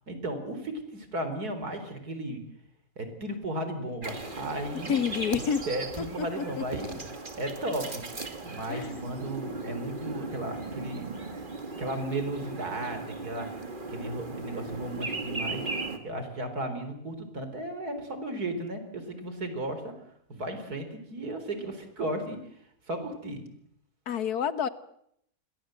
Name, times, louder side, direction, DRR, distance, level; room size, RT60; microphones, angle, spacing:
voice 1, 0.1-2.4 3.0-5.0 5.2-5.4 5.7-8.0 8.4-11.1 11.8-13.5 13.9-19.9 20.3-22.6 22.9-23.5, right 1 dB, 75° right, 9 dB, 4.4 m, -35 dB
sound 1, 4.0-16.0, right 3 dB, 30° right, 2.4 m, -37 dB
voice 2, 4.9-5.7 6.0-6.4 8.7-9.0 24.1-24.7, left 7 dB, 75° left, 13 dB, 1.8 m, -29 dB
28.5 x 21.5 x 7.7 m, 0.71 s
omnidirectional pair, 1.7 m